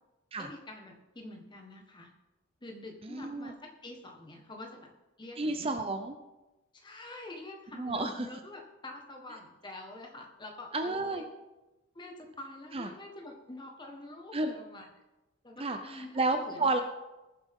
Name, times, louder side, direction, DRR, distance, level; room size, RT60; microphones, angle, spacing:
voice 1, 0.4-2.1 2.6-3.5 3.8-4.9 5.2-5.8 6.7-11.2 11.9-14.9 15.4-16.1 16.4-16.7, left 2 dB, 20° left, 2 dB, 1.5 m, -46 dB
voice 2, 3.0-3.5 5.4-6.2 7.7-8.3 10.7-11.2 12.7-12.9 14.3-14.5 15.6-16.8, right 2 dB, 25° right, 6 dB, 0.6 m, -31 dB
20.0 x 7.5 x 3.7 m, 1.0 s
head